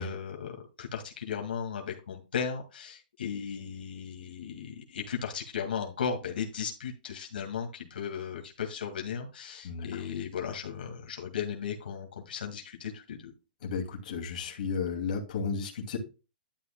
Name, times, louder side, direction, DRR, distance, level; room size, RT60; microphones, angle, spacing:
voice 1, 0.0-13.3, left 7 dB, 85° left, 2.1 m, -36 dB
voice 2, 9.6-10.0 13.6-16.0, left 5 dB, 55° left, 2.5 m, -33 dB
11.5 x 7.7 x 2.2 m
hypercardioid pair, 160°, 5 cm